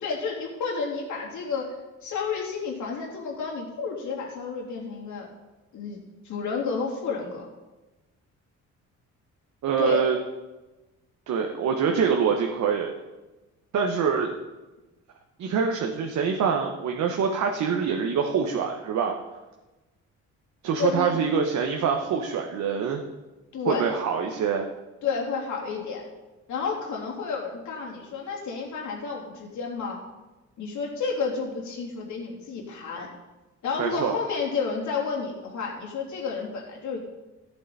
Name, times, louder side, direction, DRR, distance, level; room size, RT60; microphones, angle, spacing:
voice 1, 0.0-1.7 2.0-5.3 5.7-6.0 6.2-7.5 9.8-10.1 20.8-21.2 23.5-23.9 25.0-26.0 26.5-30.0 30.6-33.1 33.6-37.0, left 5 dB, 70° left, -2 dB, 3.1 m, -31 dB
voice 2, 9.6-10.2 11.3-12.9 13.7-14.3 15.4-19.1 20.6-23.0 23.6-24.7 33.8-34.1, right 6 dB, 70° right, 3 dB, 1.1 m, -25 dB
14.0 x 8.6 x 4.1 m, 1.1 s
cardioid pair, 90°, 30 cm